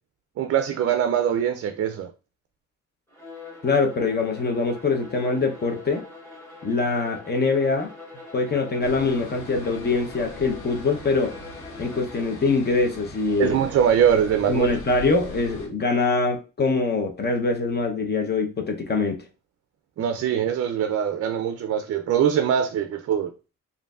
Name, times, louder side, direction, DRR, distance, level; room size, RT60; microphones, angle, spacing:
voice 1, 0.4-2.1 13.4-14.8 20.0-23.3, right 8 dB, 50° right, 0.4 m, -22 dB
Bowed string instrument, 3.1-12.6, left 2 dB, 10° left, 2.2 m, -43 dB
voice 2, 3.6-6.0 6.6-7.9 8.3-11.3 11.8-13.6 14.5-19.2, left 3 dB, 35° left, 0.8 m, -23 dB
sound 1, 8.8-15.7, left 1 dB, 85° left, 1.2 m, -41 dB
5.0 x 2.6 x 2.4 m
cardioid pair, 90°, 30 cm